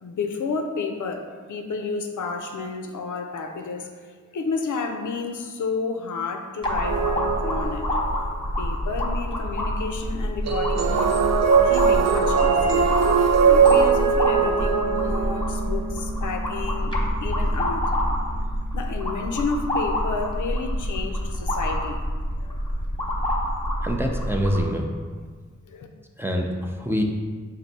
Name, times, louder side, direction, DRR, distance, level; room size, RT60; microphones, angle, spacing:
voice 1, 0.0-7.9 8.6-11.1 11.6-16.9 17.2-17.9 18.7-22.0 22.4-22.6 25.7-25.9, left 4 dB, 80° left, 4 dB, 0.5 m, -31 dB
sound 1, 6.6-24.6, equal, 15° left, 0.9 m, -27 dB
sound 2, 6.8-8.1 10.4-15.7, right 6 dB, 60° right, 0.4 m, -20 dB
Bass guitar, 14.6-20.8, right 3 dB, 40° right, 1.1 m, -39 dB
voice 2, 23.8-24.9 26.2-27.0, equal, 10° right, 1 dB, 0.5 m, -25 dB
4.4 x 2.6 x 4.0 m, 1.5 s
cardioid pair, 50°, 30 cm